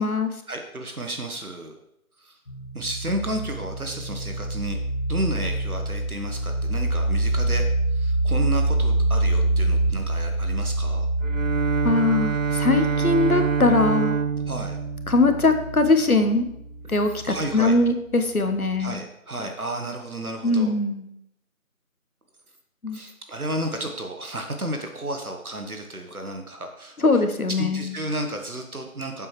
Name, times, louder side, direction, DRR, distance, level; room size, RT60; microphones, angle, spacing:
voice 1, 0.5-1.8 2.2-2.3 2.7-4.8 5.1-7.6 7.9-11.1 14.5-14.8 17.2-17.8 18.8-20.7 22.9-27.2 27.6-29.3, right 1 dB, 80° right, 4 dB, 1.4 m, -32 dB
sound 1, 2.5-17.9, right 2 dB, 55° left, 1.2 m, -26 dB
Bowed string instrument, 11.2-16.2, right 6 dB, 65° right, 0.5 m, -26 dB
voice 2, 11.8-14.2 15.1-16.4 16.9-18.9 20.4-21.1 22.8-23.0 27.0-27.9, left 3 dB, 80° left, 7 dB, 1.2 m, -21 dB
10.5 x 7.5 x 3.2 m, 0.78 s
figure-of-eight pair, 175°, 43 cm